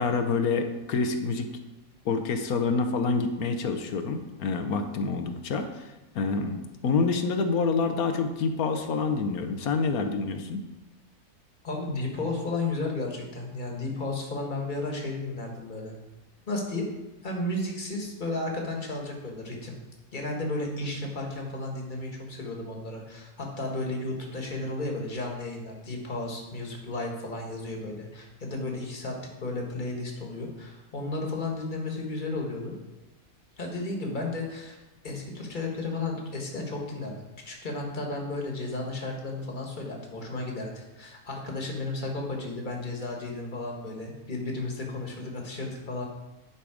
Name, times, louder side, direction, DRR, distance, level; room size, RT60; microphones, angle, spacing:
voice 1, 0.0-1.5 2.0-10.6, left 4 dB, 65° left, 7 dB, 1.2 m, -27 dB
voice 2, 11.6-15.9 16.5-16.9 17.2-19.8 20.1-32.7 33.6-37.1 37.4-46.1, left 2 dB, 30° left, 0 dB, 1.7 m, -33 dB
10.5 x 5.7 x 4.9 m, 1.1 s
omnidirectional pair, 1.7 m